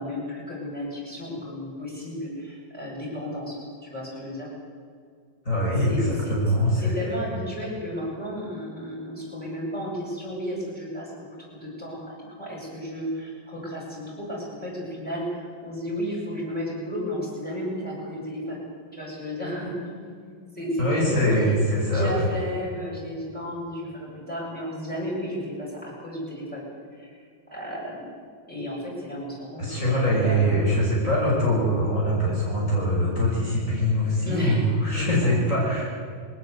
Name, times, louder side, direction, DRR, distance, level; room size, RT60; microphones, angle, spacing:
voice 1, 0.0-3.6 3.8-4.5 5.8-6.5 6.8-11.1 11.6-18.6 18.9-21.5 21.9-26.6 26.9-27.2 27.5-28.0 28.5-30.4 34.2-34.6 34.9-35.3, equal, 5° left, -6 dB, 7.9 m, -33 dB
voice 2, 5.4-7.1 20.8-22.2 29.6-35.8, equal, 40° left, -5 dB, 6.5 m, -23 dB
21.5 x 19.5 x 8.2 m, 2.2 s
omnidirectional pair, 2.1 m